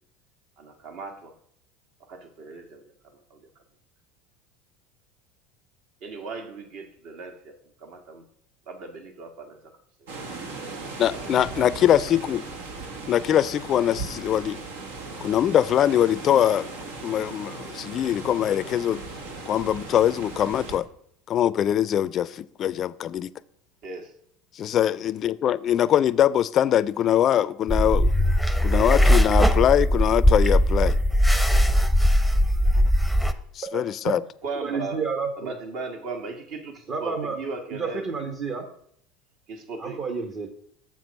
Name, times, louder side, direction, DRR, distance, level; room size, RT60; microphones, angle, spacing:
voice 1, 0.6-1.4 2.1-2.8 3.1-3.6 6.0-8.2 8.7-9.8 10.2-10.3 11.1-11.7 23.8-24.1 34.4-35.1 35.4-38.1 39.5-40.0, right 4 dB, 65° right, 1.7 m, -38 dB
sound 1, 10.1-20.8, right 3 dB, 90° right, 1.3 m, -37 dB
voice 2, 11.0-12.4 13.1-14.6 15.2-16.7 17.0-19.0 19.5-20.9 21.3-23.3 24.5-28.1 28.6-31.0 33.6-34.2, left 10 dB, 45° left, 0.4 m, -22 dB
sound 2, 27.7-33.3, equal, ahead, 0.7 m, -19 dB
voice 3, 34.6-35.5 36.9-37.4 37.8-38.6 39.8-40.5, right 5 dB, 45° right, 1.1 m, -30 dB
7.2 x 6.1 x 5.3 m
supercardioid pair, 105°, 0 cm